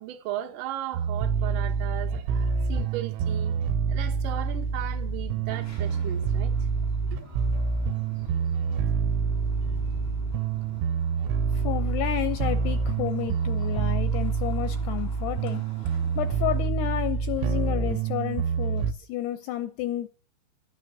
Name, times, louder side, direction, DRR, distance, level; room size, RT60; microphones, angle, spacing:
voice 1, 0.0-3.5 3.9-6.5 7.1-7.7, right 12 dB, 55° right, 2.7 m, -37 dB
sound 1, 0.9-18.9, right 6 dB, 85° right, 3.3 m, -27 dB
sound 2, 3.6-13.7, left 1 dB, 20° right, 1.1 m, -46 dB
sound 3, 5.5-16.7, left 4 dB, 25° left, 1.3 m, -52 dB
voice 2, 11.5-15.6 16.2-20.1, left 13 dB, 75° left, 2.6 m, -31 dB
13.0 x 8.8 x 9.6 m
omnidirectional pair, 5.4 m